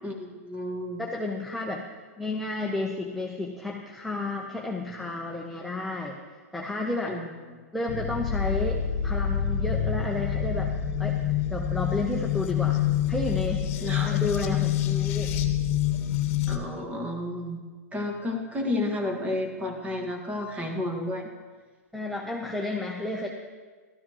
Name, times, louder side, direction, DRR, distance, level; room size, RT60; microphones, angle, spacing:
voice 1, 0.0-1.0 7.0-7.6 13.8-14.1 16.5-17.6 17.9-21.3, left 1 dB, 15° right, 3 dB, 1.7 m, -31 dB
voice 2, 1.0-1.9 2.2-7.2 7.7-10.7 11.0-12.8 13.1-15.3 21.9-23.3, left 2 dB, ahead, -1 dB, 0.8 m, -32 dB
sound 1, 7.9-16.6, left 9 dB, 50° left, 1.1 m, -27 dB
13.5 x 12.5 x 3.1 m, 1.5 s
hypercardioid pair, 120°, 9 cm